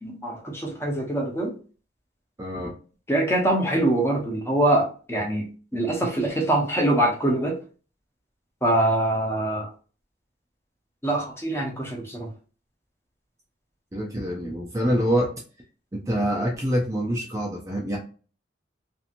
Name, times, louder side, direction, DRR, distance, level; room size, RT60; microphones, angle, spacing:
voice 1, 0.0-1.5 3.1-5.5 5.7-7.6 8.6-9.7 11.0-12.3, right 1 dB, 15° left, 0 dB, 0.7 m, -24 dB
voice 2, 2.4-2.7 13.9-15.3 15.9-18.0, equal, 15° right, -1 dB, 0.4 m, -25 dB
2.8 x 2.6 x 2.5 m, 0.37 s
head